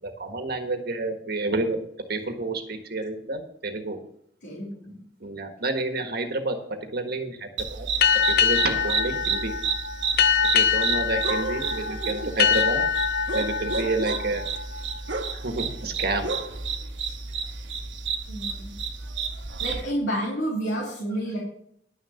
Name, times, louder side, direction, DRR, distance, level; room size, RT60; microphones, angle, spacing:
voice 1, 0.0-1.8 2.1-4.0 5.2-7.9 8.1-9.5 10.5-12.8 13.3-14.4 15.3-16.3, right 2 dB, 60° right, 5 dB, 1.5 m, -29 dB
voice 2, 4.4-5.0 17.0-17.1 18.3-18.7 19.6-21.4, right 1 dB, 75° left, -3 dB, 3.1 m, -30 dB
sound 1, 7.6-19.8, right 5 dB, 85° right, 1.3 m, -31 dB
sound 2, 8.0-15.3, left 7 dB, 55° left, 0.7 m, -24 dB
11.0 x 6.5 x 7.1 m, 0.71 s
head